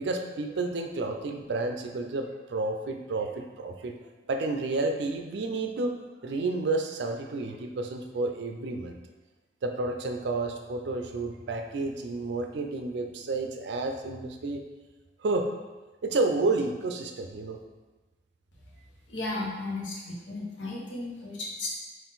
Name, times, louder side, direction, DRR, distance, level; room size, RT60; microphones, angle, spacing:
voice 1, 0.0-4.0 4.3-5.9 6.2-9.0 9.6-14.6 15.2-15.5 16.0-17.6, right 3 dB, 65° right, 4 dB, 0.4 m, -30 dB
voice 2, 19.1-21.8, left 2 dB, 85° left, -3 dB, 0.9 m, -34 dB
3.8 x 2.5 x 4.0 m, 1.2 s
head